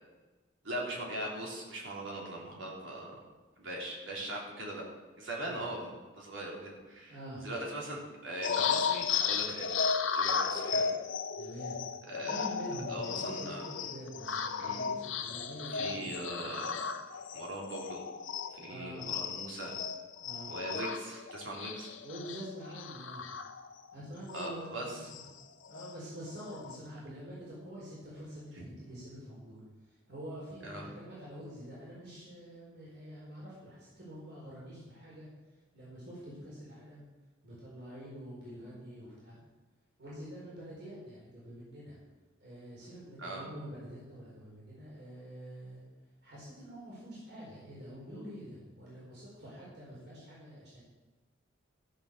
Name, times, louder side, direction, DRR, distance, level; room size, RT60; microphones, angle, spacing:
voice 1, 0.6-3.1 3.6-4.8 5.2-7.2 7.4-9.7 10.1-10.9 12.1-12.5 12.9-13.7 14.6-14.8 15.7-16.8 17.3-18.0 18.5-19.7 20.5-21.9 24.3-25.1 28.5-28.7 30.6-30.8 38.6-38.7 43.2-43.5, right 1 dB, 80° right, -2 dB, 3.5 m, -40 dB
voice 2, 7.1-7.4 11.4-11.8 12.2-16.1 18.7-19.1 20.2-20.5 22.0-23.3 23.9-25.2 25.7-29.6 30.1-35.3 35.7-37.0 37.4-39.4 40.0-42.0 42.4-45.8 46.2-50.8, equal, 60° right, -7 dB, 4.4 m, -46 dB
sound 1, 8.4-18.7 19.0-23.9 24.3-24.5 24.8-25.9 26.3-26.8, left 6 dB, 85° left, 1.0 m, -35 dB
13.5 x 7.0 x 6.7 m, 1.2 s
head